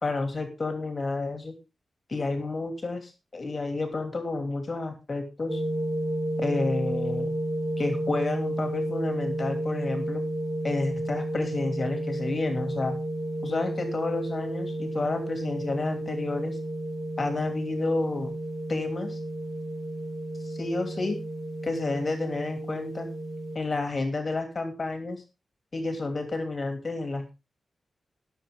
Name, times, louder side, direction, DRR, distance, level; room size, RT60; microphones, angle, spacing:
voice 1, 0.0-1.5 2.1-5.6 6.4-7.3 7.8-10.2 10.6-13.0 13.4-16.6 17.2-18.3 18.7-19.2 20.4-21.2 21.6-23.1 23.5-25.2 25.7-27.3, left 3 dB, 35° left, 6 dB, 2.9 m, -30 dB
sound 1, 5.5-23.6, right 1 dB, 25° right, 3.2 m, -32 dB
19.5 x 7.3 x 3.7 m, 0.27 s
wide cardioid pair, 130°, 0 cm